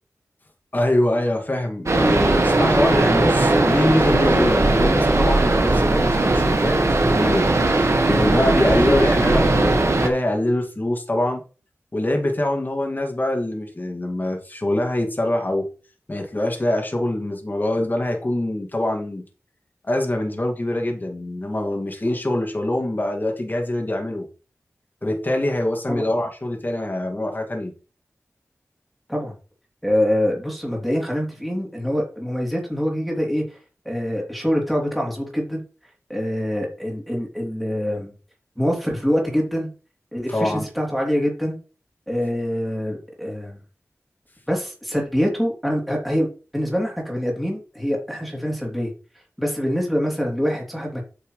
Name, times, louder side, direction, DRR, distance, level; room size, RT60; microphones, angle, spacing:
voice 1, 0.7-6.8 7.0-11.4 11.9-15.7 16.1-19.2 19.8-24.3 25.0-27.7 40.3-40.6, left 1 dB, 35° left, 3 dB, 2.2 m, -24 dB
sound 1, 1.9-10.1, right 2 dB, 65° right, 1.6 m, -18 dB
voice 2, 29.8-33.6 33.8-35.6 36.1-38.1 38.6-39.7 40.1-41.6 42.1-43.6 44.5-46.3 46.5-48.9 49.4-51.0, equal, ahead, -1 dB, 3.3 m, -24 dB
9.1 x 6.4 x 3.2 m, 0.35 s
wide cardioid pair, 55°, 5 cm